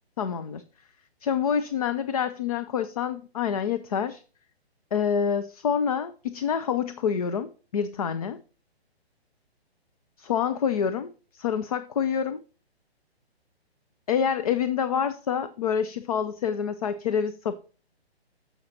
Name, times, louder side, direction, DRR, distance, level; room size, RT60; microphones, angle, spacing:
voice 1, 0.2-0.6 1.2-4.2 4.9-8.4 10.2-12.4 14.1-17.5, left 7 dB, 35° left, 0.5 m, -27 dB
10.5 x 7.0 x 2.7 m
figure-of-eight pair, 135°, 32 cm